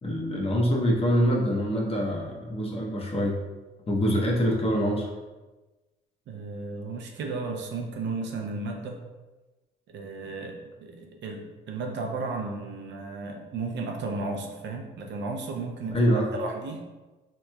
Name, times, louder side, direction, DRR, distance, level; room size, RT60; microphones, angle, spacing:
voice 1, 0.0-3.4 3.9-5.1 15.9-16.3, equal, 30° left, -1 dB, 0.7 m, -25 dB
voice 2, 6.3-9.0 9.9-16.8, right 3 dB, 65° right, 2 dB, 0.6 m, -34 dB
3.4 x 3.0 x 2.2 m, 1.2 s
cardioid pair, 90°, 20 cm